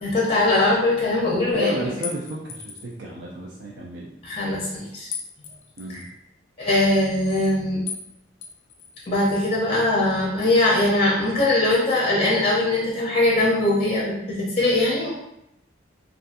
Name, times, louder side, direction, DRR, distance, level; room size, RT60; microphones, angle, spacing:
voice 1, 0.0-1.9 4.2-5.1 5.9-6.1 6.6-7.8 9.1-15.1, left 2 dB, 30° left, -5 dB, 0.6 m, -21 dB
voice 2, 1.5-4.1 5.8-6.0, left 1 dB, 70° right, -4 dB, 0.4 m, -31 dB
sound 1, 2.0-3.0 5.1-6.1 7.9-8.1 8.4-9.4, left 7 dB, 80° left, 0.4 m, -37 dB
2.6 x 2.4 x 2.4 m, 0.82 s
head